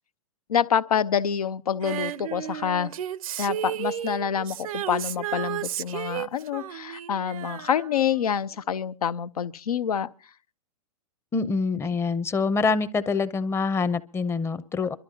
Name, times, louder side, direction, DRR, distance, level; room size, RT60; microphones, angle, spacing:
voice 1, 0.5-2.9 3.4-10.1, left 8 dB, 90° left, 0.7 m, -27 dB
Female singing, 1.8-8.4 8.7-8.8, right 11 dB, 70° right, 0.6 m, -33 dB
voice 2, 11.3-15.0, left 4 dB, 15° left, 0.6 m, -25 dB
29.0 x 12.5 x 2.8 m
hypercardioid pair, 120°, 19 cm